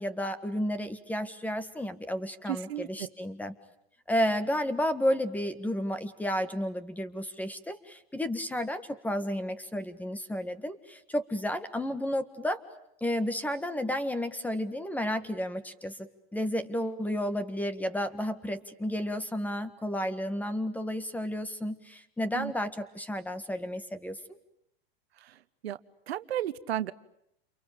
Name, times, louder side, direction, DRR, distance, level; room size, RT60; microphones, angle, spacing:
voice 1, 0.0-3.5 4.1-12.6 13.0-24.4, equal, 5° left, 12 dB, 1.7 m, -32 dB
voice 2, 2.5-2.9 22.3-22.5 25.2-25.4 25.6-25.8 26.1-26.9, right 11 dB, 85° right, 15 dB, 1.2 m, -33 dB
29.0 x 23.5 x 8.8 m, 0.79 s
hypercardioid pair, 130°, 30 cm